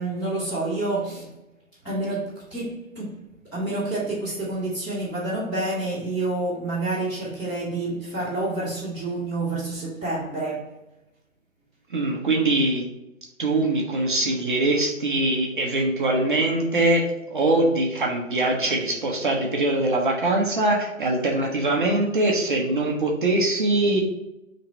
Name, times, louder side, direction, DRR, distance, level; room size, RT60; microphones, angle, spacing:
voice 1, 0.0-1.4 1.8-10.7, right 2 dB, 5° left, 0.6 m, -28 dB
voice 2, 11.9-12.8 13.4-24.0, right 2 dB, 40° right, 0.5 m, -22 dB
2.9 x 2.8 x 4.3 m
hypercardioid pair, 155°, 40 cm